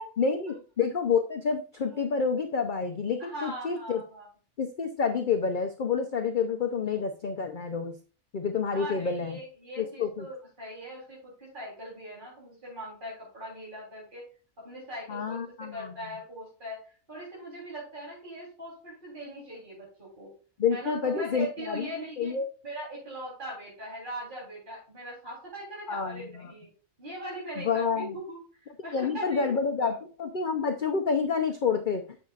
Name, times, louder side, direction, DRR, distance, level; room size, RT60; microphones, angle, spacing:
voice 1, 0.2-4.0 4.6-7.9 8.3-9.4 9.8-10.3 15.1-15.9 20.6-21.9 22.2-22.5 25.9-26.5 27.6-28.1 28.9-32.0, left 5 dB, 45° left, 6 dB, 0.7 m, -28 dB
voice 2, 3.2-4.3 8.7-14.2 14.6-15.4 15.7-16.8 17.1-20.3 20.7-22.3 22.6-26.7 27.0-29.5 29.8-30.0, right 1 dB, 35° right, -7 dB, 3.7 m, -40 dB
9.7 x 7.1 x 2.4 m, 0.37 s
omnidirectional pair, 1.5 m